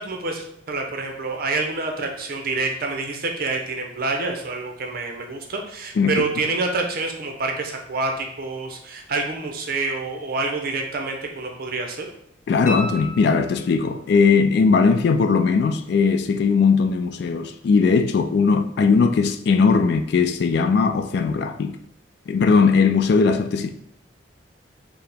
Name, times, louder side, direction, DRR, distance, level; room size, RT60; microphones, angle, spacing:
voice 1, 0.0-12.1, right 3 dB, 50° right, 0.6 m, -27 dB
voice 2, 12.5-21.8 22.3-23.7, left 5 dB, 60° left, 0.3 m, -19 dB
sound 1, 12.7-14.0 16.8-16.9, left 1 dB, 40° left, 0.8 m, -34 dB
4.7 x 2.1 x 3.3 m
head